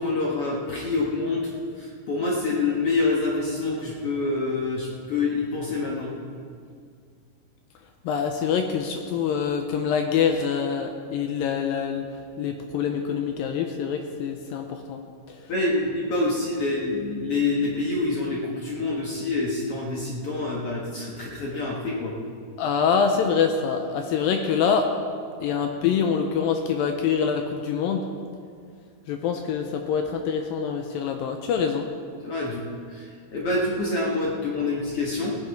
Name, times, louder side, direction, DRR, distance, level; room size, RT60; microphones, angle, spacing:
voice 1, 0.0-1.5 1.8-6.1 15.5-22.1 32.2-33.1 33.3-35.4, left 3 dB, 60° left, -3 dB, 1.5 m, -26 dB
voice 2, 8.0-12.1 12.4-15.0 15.3-15.5 22.6-24.9 25.4-28.1 29.1-31.9, left 6 dB, 80° left, 5 dB, 2.2 m, -25 dB
17.0 x 10.5 x 4.7 m, 2.2 s
omnidirectional pair, 4.6 m